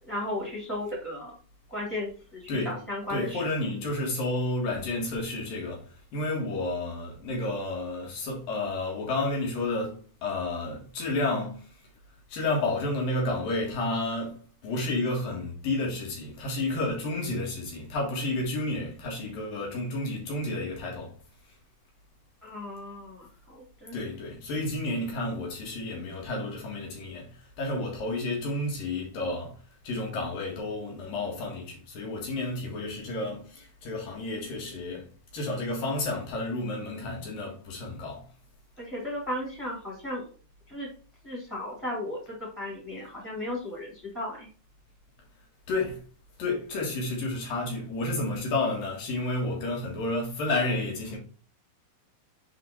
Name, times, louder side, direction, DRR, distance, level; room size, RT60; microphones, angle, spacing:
voice 1, 0.0-1.4 1.7-3.5 22.4-24.0 38.8-40.3 40.7-40.9 41.2-44.5, left 1 dB, ahead, 2.0 m, -35 dB
voice 2, 3.1-11.8 12.3-21.1 23.9-38.3 45.7-46.0 46.4-51.2, left 2 dB, 60° left, 2.6 m, -31 dB
8.3 x 3.8 x 4.0 m
omnidirectional pair, 5.9 m